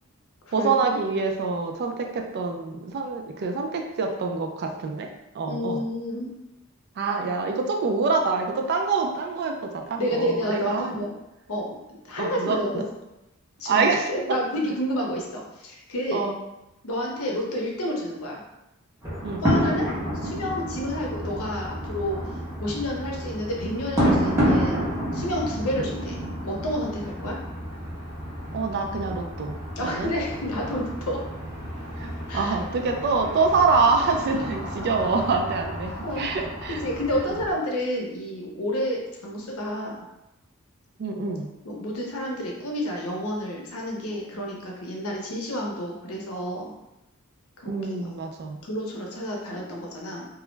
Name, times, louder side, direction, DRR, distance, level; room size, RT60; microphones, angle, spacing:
voice 1, 0.5-5.1 5.3-5.8 7.0-11.1 12.2-12.8 13.7-14.4 16.1-16.4 19.2-19.4 28.5-29.5 29.8-30.1 32.0-36.8 41.0-41.5 47.7-48.6, right 4 dB, 50° right, 3 dB, 0.3 m, -26 dB
voice 2, 5.5-6.3 10.0-11.1 11.5-12.8 13.6-16.2 16.8-18.4 19.4-22.2 22.6-27.4 29.8-31.2 32.3-32.5 34.3-34.4 36.0-36.3 36.7-40.0 41.6-46.7 47.6-48.1 48.6-50.2, equal, 90° left, -1 dB, 0.6 m, -30 dB
sound 1, 19.0-37.5, equal, 10° right, 0.8 m, -30 dB
2.2 x 2.0 x 3.1 m, 0.93 s
head